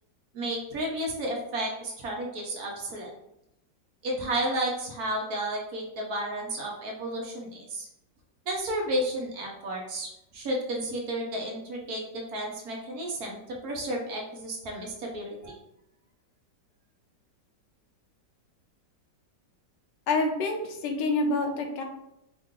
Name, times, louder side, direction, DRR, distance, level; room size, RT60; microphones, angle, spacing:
voice 1, 0.3-3.1 4.0-7.9 8.5-12.0 12.3-15.5, right 1 dB, 60° right, -1 dB, 1.3 m, -32 dB
voice 2, 20.1-21.8, left 2 dB, 80° left, 3 dB, 1.4 m, -27 dB
4.7 x 2.6 x 3.6 m, 0.82 s
omnidirectional pair, 1.9 m